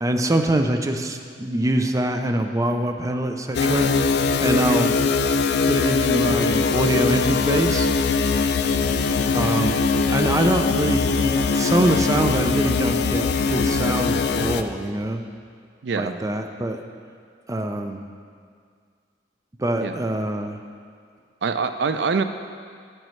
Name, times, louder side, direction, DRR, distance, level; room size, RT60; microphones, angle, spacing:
voice 1, 0.0-3.9 4.4-5.0 5.6-7.9 9.3-9.8 10.1-15.2 16.0-16.8 17.5-18.0 19.6-20.6, right 1 dB, 20° right, 5 dB, 0.4 m, -24 dB
sound 1, 3.5-14.6, left 4 dB, 65° left, 0.4 m, -21 dB
voice 2, 15.8-16.1 19.8-20.0 21.4-22.2, right 5 dB, 75° right, 9 dB, 0.4 m, -24 dB
9.7 x 9.0 x 3.2 m, 2.1 s
head